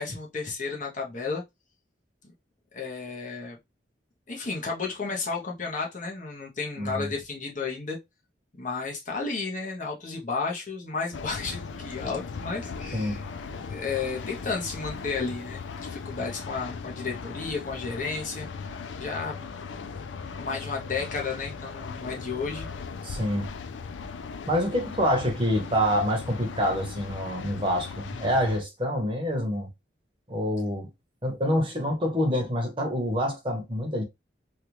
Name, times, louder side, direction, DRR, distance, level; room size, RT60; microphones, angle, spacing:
voice 1, 0.0-1.4 2.7-3.6 4.3-8.0 8.6-13.3 13.7-18.5 19.0-19.5 20.4-22.7, left 4 dB, 45° left, 0.9 m, -32 dB
voice 2, 6.8-7.1 12.9-13.2 23.0-23.5 24.5-29.7 30.3-30.9 31.2-34.0, equal, 30° right, 1.0 m, -26 dB
sound 1, 11.1-28.6, left 5 dB, 90° left, 0.4 m, -38 dB
3.4 x 2.4 x 2.9 m
head